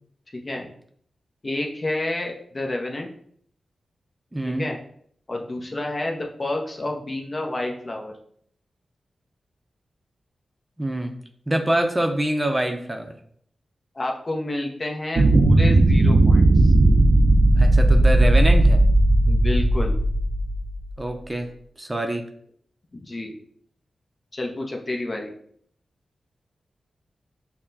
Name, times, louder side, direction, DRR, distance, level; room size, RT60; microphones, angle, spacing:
voice 1, 0.3-0.7 1.4-3.1 4.5-4.8 5.3-8.1 13.9-16.7 19.3-19.9 22.9-23.3 24.3-25.3, left 2 dB, 40° left, 1 dB, 0.7 m, -29 dB
voice 2, 4.3-4.7 10.8-11.1 11.5-13.2 17.6-18.8 21.0-21.5 21.8-22.2, right 1 dB, 20° right, 4 dB, 0.6 m, -25 dB
sound 1, 15.2-20.9, right 1 dB, 70° right, 0.4 m, -16 dB
5.7 x 2.2 x 2.7 m, 0.64 s
cardioid pair, 45°, 0 cm